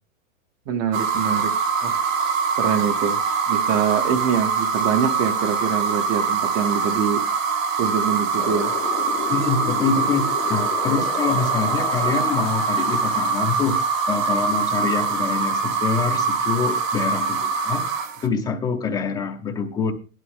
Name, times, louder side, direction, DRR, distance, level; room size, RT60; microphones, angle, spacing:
voice 1, 0.7-2.0 2.5-3.2 3.5-7.2 7.8-8.7, right 7 dB, 25° right, 9 dB, 0.8 m, -24 dB
sound 1, 0.9-18.3, right 5 dB, 75° right, 1.9 m, -23 dB
Wind, 8.4-13.8, left 12 dB, 70° left, 1.2 m, -33 dB
voice 2, 9.3-13.8 14.1-19.9, left 5 dB, 10° left, 4 dB, 0.7 m, -25 dB
16.5 x 11.5 x 3.6 m, 0.32 s
supercardioid pair, 165°, 40 cm